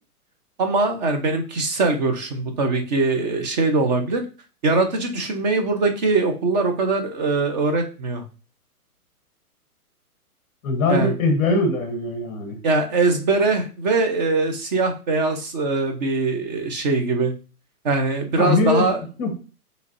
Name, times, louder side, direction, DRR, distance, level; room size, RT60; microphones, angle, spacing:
voice 1, 0.6-4.2 4.6-8.2 10.9-11.1 12.6-17.3 17.8-19.0, right 3 dB, 30° right, 5 dB, 0.7 m, -22 dB
voice 2, 10.6-12.6 18.4-18.9 19.2-19.4, left 3 dB, 25° left, 3 dB, 0.8 m, -21 dB
4.9 x 3.2 x 2.6 m, 0.35 s
hypercardioid pair, 140°, 46 cm